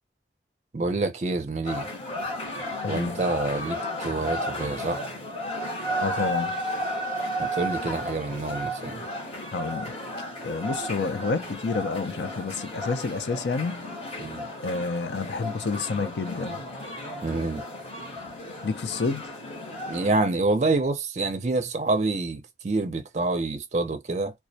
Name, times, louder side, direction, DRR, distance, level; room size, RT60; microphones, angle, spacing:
voice 1, 0.7-1.9 2.9-5.0 7.4-9.1 14.2-14.5 17.2-17.6 19.9-24.3, right 2 dB, 40° right, 0.5 m, -27 dB
sound 1, 1.6-20.1, equal, 35° left, 1.1 m, -33 dB
voice 2, 2.8-3.3 6.0-6.6 9.5-9.9 10.4-13.9 14.6-16.6 18.6-19.3, left 4 dB, 75° left, 0.5 m, -29 dB
2.2 x 2.1 x 2.6 m
head